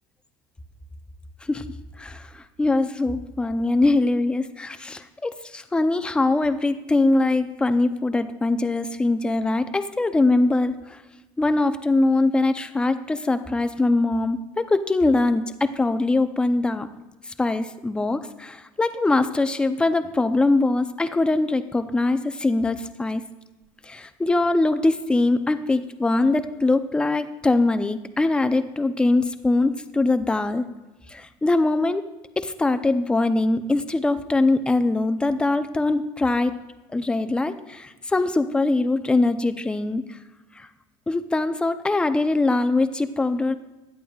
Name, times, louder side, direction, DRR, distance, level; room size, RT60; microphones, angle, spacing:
voice 1, 2.0-11.0 11.4-16.9 17.3-23.2 23.8-30.7 31.1-32.1 32.4-36.5 36.9-40.2 40.6-40.7 41.1-43.5, left 2 dB, 10° left, 10 dB, 0.5 m, -22 dB
16.0 x 11.0 x 2.3 m, 1.1 s
cardioid pair, 150°, 11 cm